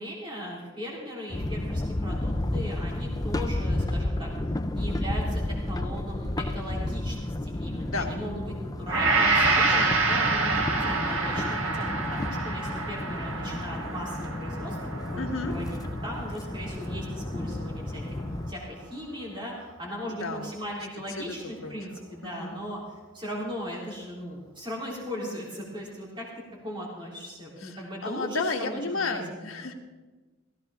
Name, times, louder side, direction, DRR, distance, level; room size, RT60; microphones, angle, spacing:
voice 1, 0.0-4.3 4.7-18.0 18.5-22.8 23.1-26.3 26.6-29.6, equal, 25° right, -4 dB, 3.7 m, -38 dB
sound 1, 1.3-18.5, left 1 dB, 20° left, 0.5 m, -32 dB
Gong, 8.9-17.2 17.6-17.8, right 3 dB, 85° right, 1.7 m, -27 dB
voice 2, 15.2-15.6 20.1-20.5 21.2-21.3 21.6-22.5 27.6-27.8 28.0-29.7, left 3 dB, 90° left, 2 dB, 1.6 m, -32 dB
16.5 x 15.5 x 3.6 m, 1.3 s
head